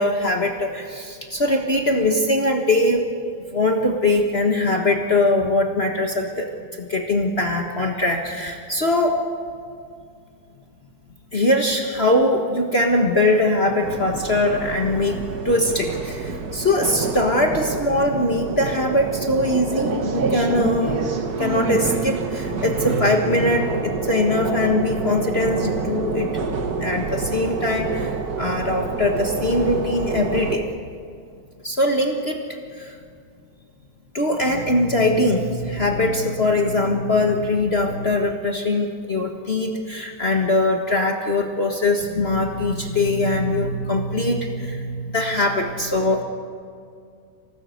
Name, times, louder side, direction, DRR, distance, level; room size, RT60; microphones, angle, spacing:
voice 1, 0.0-3.1 3.5-6.5 6.8-9.2 11.3-21.0 21.4-26.5 26.8-30.6 31.6-32.4 32.8-33.0 34.1-46.2, left 2 dB, 60° left, 2 dB, 0.6 m, -21 dB
sound 1, 13.8-30.6, right 4 dB, 45° right, 1.3 m, -27 dB
26.0 x 18.5 x 7.9 m, 2.3 s
omnidirectional pair, 3.7 m